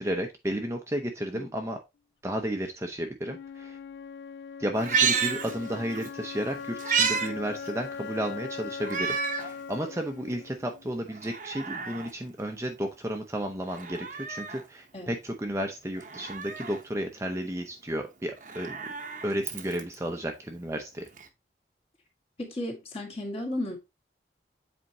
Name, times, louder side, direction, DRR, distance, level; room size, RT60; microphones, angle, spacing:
voice 1, 0.0-1.8 2.2-3.8 4.6-18.9 19.2-21.0, equal, 15° right, 0.6 m, -33 dB
Wind instrument woodwind instrument, 3.2-11.2, left 6 dB, 70° left, 0.3 m, -40 dB
Meow, 4.7-6.1 6.4-7.3 7.7-7.8 8.8-9.5 10.0-10.1 11.1-12.1 13.6-14.6 16.0-16.8 18.3-19.9 21.2-21.3, right 6 dB, 45° right, 0.9 m, -30 dB
voice 2, 22.4-23.8, left 1 dB, 35° left, 1.7 m, -34 dB
7.8 x 4.4 x 2.8 m
head